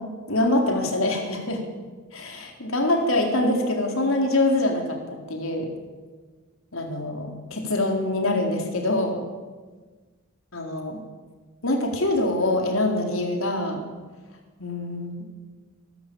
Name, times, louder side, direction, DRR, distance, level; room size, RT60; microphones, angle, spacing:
voice 1, 0.3-1.6 2.1-5.7 6.7-9.2 10.5-11.0 11.6-13.8 14.6-15.2, left 1 dB, 70° left, 2 dB, 4.1 m, -24 dB
25.0 x 13.0 x 8.8 m, 1.3 s
head